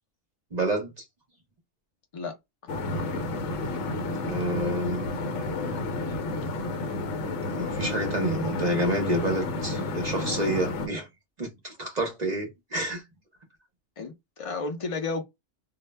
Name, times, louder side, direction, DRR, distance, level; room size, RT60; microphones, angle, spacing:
voice 1, 0.5-0.9 4.2-5.0 7.4-11.1 11.4-13.0, right 1 dB, 45° right, 0.6 m, -29 dB
sound 1, 2.7-10.9, left 2 dB, 80° left, 1.0 m, -31 dB
voice 2, 14.0-15.2, left 3 dB, 55° left, 0.3 m, -32 dB
2.2 x 2.0 x 3.2 m
omnidirectional pair, 1.3 m